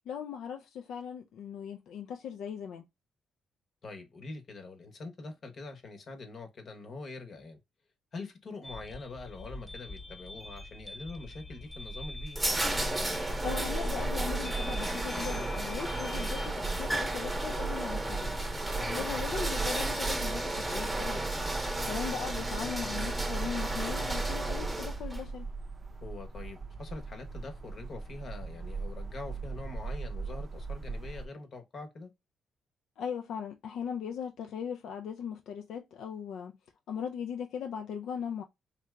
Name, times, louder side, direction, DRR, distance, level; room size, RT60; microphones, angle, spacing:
voice 1, 0.1-2.9 13.4-18.4 18.9-21.2 21.8-25.5 33.0-36.6 36.9-38.4, left 7 dB, 75° left, 0.3 m, -39 dB
voice 2, 3.8-7.6 8.1-12.5 18.8-19.1 26.0-32.1, left 3 dB, 50° left, 0.9 m, -44 dB
sound 1, 8.6-16.5, left 2 dB, 20° left, 0.6 m, -45 dB
sound 2, 11.7-25.3, right 1 dB, 15° right, 0.8 m, -33 dB
sound 3, 13.3-31.3, right 4 dB, 35° right, 0.5 m, -39 dB
3.3 x 2.8 x 2.2 m
cardioid pair, 90°, 0 cm